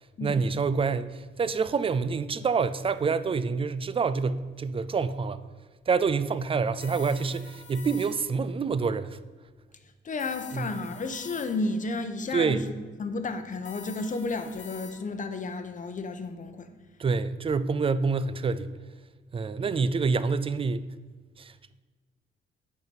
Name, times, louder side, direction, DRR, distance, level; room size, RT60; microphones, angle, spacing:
voice 1, 0.2-5.4 5.9-9.2 10.5-10.7 12.3-12.6 17.0-18.7 19.3-20.9 21.4-21.5, right 5 dB, 25° right, 0.4 m, -27 dB
sound 1, 6.8-8.5 10.2-11.9 13.6-14.9, left 6 dB, 85° left, 2.0 m, -47 dB
voice 2, 10.0-12.7 13.0-16.7, left 3 dB, 40° left, 0.9 m, -32 dB
8.4 x 5.9 x 5.3 m
cardioid pair, 90°, 20 cm